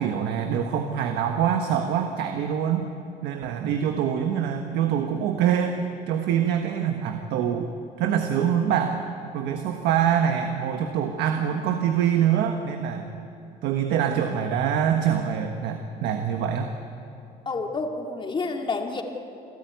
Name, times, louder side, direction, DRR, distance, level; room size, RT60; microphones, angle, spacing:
voice 1, 0.0-2.9 3.2-7.7 8.0-9.0 9.3-13.1 13.6-16.7, right 8 dB, 85° right, 5 dB, 1.4 m, -25 dB
voice 2, 17.5-19.0, left 3 dB, 30° left, 3 dB, 2.3 m, -29 dB
27.5 x 14.5 x 9.3 m, 2.8 s
cardioid pair, 110°, 17 cm